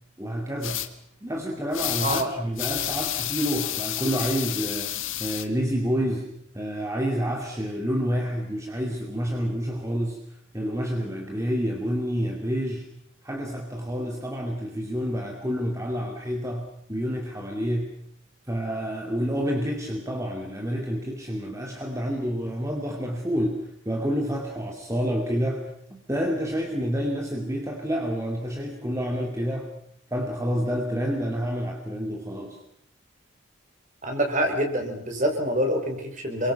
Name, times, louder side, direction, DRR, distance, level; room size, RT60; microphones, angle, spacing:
voice 1, 0.2-0.8 1.2-6.3 6.5-10.2 10.5-12.9 13.2-18.0 18.5-29.7 30.1-32.6, equal, 15° right, 1 dB, 2.4 m, -28 dB
sound 1, 0.6-0.9 1.7-2.3 2.6-5.4, left 13 dB, 80° left, 1.8 m, -30 dB
voice 2, 34.0-36.5, equal, 40° right, 3 dB, 4.9 m, -26 dB
29.0 x 23.5 x 5.8 m, 0.72 s
head